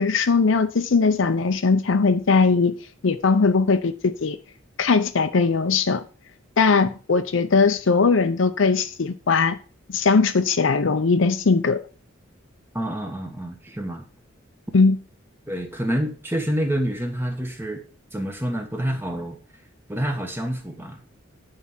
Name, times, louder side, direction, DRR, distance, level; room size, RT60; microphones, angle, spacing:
voice 1, 0.0-2.7 3.0-4.4 4.8-6.0 6.6-9.6 9.9-11.8 14.7-15.0, left 4 dB, 65° left, 0.6 m, -19 dB
voice 2, 12.7-14.0 15.5-17.8 18.1-19.4 19.9-21.1, right 1 dB, 10° right, 1.2 m, -28 dB
9.6 x 4.8 x 5.6 m
head